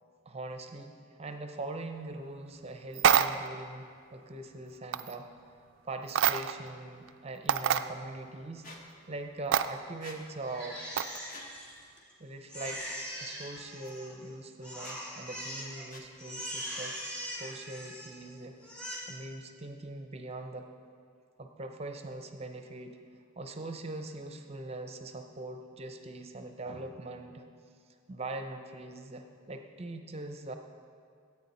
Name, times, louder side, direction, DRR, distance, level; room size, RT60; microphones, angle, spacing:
voice 1, 0.3-5.3 5.8-8.7 9.1-10.8 12.2-12.8 13.2-18.5 19.1-20.7 21.4-23.0 23.4-27.4 28.1-30.6, right 2 dB, 30° right, 6 dB, 0.7 m, -42 dB
sound 1, 2.9-3.6 4.9-5.1 6.1-6.7 7.1-7.2 7.5-7.9 9.5-9.7 11.0-11.2, right 8 dB, 60° right, 0.4 m, -26 dB
Squeak, 8.6-8.8 10.0-10.2 11.2-11.5 12.6-12.8 13.8-13.9 14.8-15.0 15.9-16.1, left 2 dB, 40° left, 1.1 m, -49 dB
Crying sobbing, 10.4-12.1 12.5-14.3 14.6-15.8 16.2-18.3 18.6-19.0, equal, 5° left, 2.3 m, -41 dB
14.0 x 8.6 x 4.2 m, 2.2 s
head